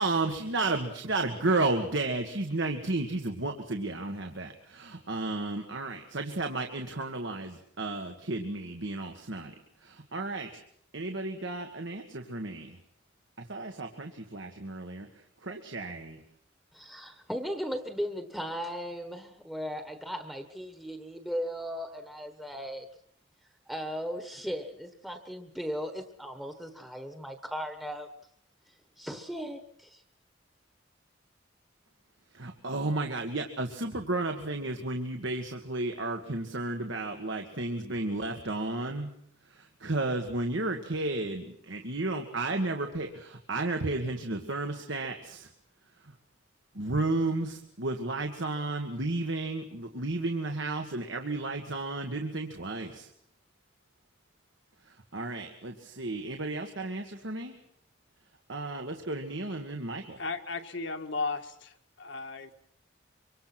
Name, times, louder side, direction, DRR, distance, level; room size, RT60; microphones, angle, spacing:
voice 1, 0.0-9.5 9.8-10.6 10.9-12.8 13.4-15.1 15.4-16.2 32.3-39.1 39.5-45.5 46.0-46.1 46.7-53.1 54.9-57.6 58.5-60.2, right 2 dB, 75° right, 4 dB, 1.8 m, -33 dB
voice 2, 16.7-22.9 23.7-28.1 29.0-30.0, equal, ahead, 7 dB, 1.3 m, -37 dB
voice 3, 60.2-61.7 62.0-62.5, left 3 dB, 70° left, 5 dB, 1.8 m, -35 dB
24.5 x 24.5 x 6.1 m, 0.68 s
head